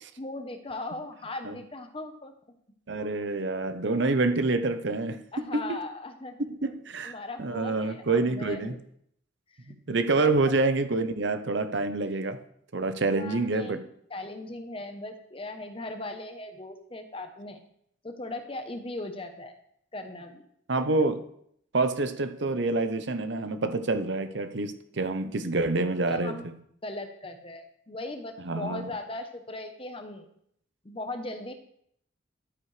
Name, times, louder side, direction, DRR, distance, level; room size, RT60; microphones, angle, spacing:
voice 1, 0.2-2.3 5.3-6.7 7.0-8.8 9.6-9.7 10.2-10.3 13.1-13.8 14.1-17.6 18.0-19.6 19.9-20.4 26.1-26.5 26.8-30.3 30.8-31.5, left 2 dB, 25° left, 7 dB, 0.9 m, -38 dB
voice 2, 2.9-5.8 6.6-7.1 7.4-8.8 9.7-12.4 12.7-13.8 20.7-21.2 21.7-26.4 28.4-28.9, right 3 dB, 60° right, 9 dB, 0.7 m, -27 dB
11.5 x 9.4 x 3.3 m, 0.70 s
head